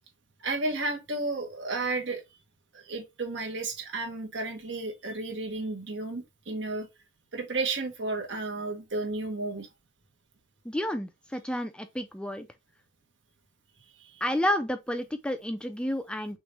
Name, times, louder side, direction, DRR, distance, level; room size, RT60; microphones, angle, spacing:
voice 1, 0.4-2.2 2.7-6.9 7.3-9.7 14.0-14.2, right 2 dB, 70° right, 1.4 m, -32 dB
voice 2, 10.6-12.5 14.2-16.4, left 1 dB, 5° left, 0.4 m, -30 dB
6.1 x 2.6 x 3.3 m
head